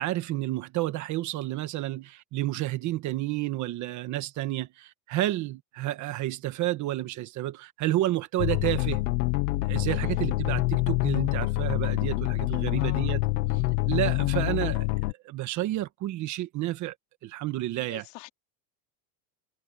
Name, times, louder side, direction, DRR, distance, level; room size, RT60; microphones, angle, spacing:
voice 1, 0.0-9.0 9.6-13.2 13.8-14.9 15.2-16.9 17.2-18.0, right 15 dB, 35° right, 1.4 m, -30 dB
sound 1, 8.4-15.1, left 22 dB, 75° left, 1.1 m, -26 dB
voice 2, 10.0-10.5 12.7-13.1 17.9-18.3, left 22 dB, 55° left, 3.2 m, -46 dB
cardioid pair, 170°, 48 cm